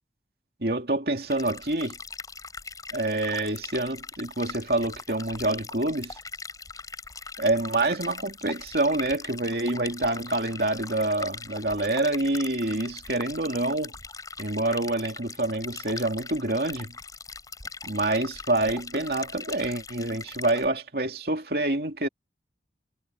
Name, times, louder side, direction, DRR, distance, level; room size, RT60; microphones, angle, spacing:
voice 1, 0.6-2.0 2.9-6.2 7.4-13.9 14.4-16.9 17.8-22.1, right 2 dB, 55° right, 2.7 m, -27 dB
sound 1, 1.3-20.7, left 4 dB, 20° left, 7.0 m, -40 dB
head